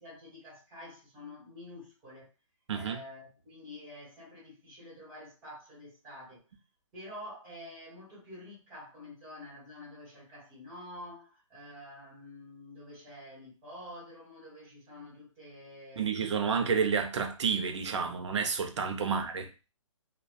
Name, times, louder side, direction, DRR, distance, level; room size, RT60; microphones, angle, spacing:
voice 1, 0.0-2.3 2.7-6.4 6.9-16.2 16.6-16.7 19.0-19.2, left 1 dB, 20° right, 1.5 m, -48 dB
voice 2, 16.0-19.5, right 6 dB, 60° right, 0.6 m, -30 dB
2.6 x 2.3 x 2.2 m
hypercardioid pair, 150°, 17 cm